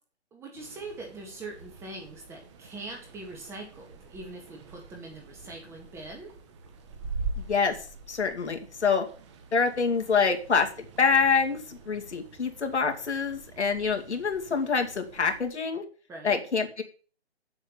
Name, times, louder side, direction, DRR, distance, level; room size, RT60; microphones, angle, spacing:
voice 1, 0.3-6.3 16.1-16.4, right 2 dB, 10° right, 1 dB, 1.7 m, -42 dB
sound 1, 0.5-15.5, right 3 dB, 25° right, 1.5 m, -44 dB
voice 2, 7.4-7.8 8.1-9.1 9.5-10.7 11.0-15.8 16.2-16.8, left 5 dB, 80° left, 4 dB, 2.6 m, -26 dB
8.0 x 7.3 x 7.2 m, 0.40 s
hypercardioid pair, 160°, 34 cm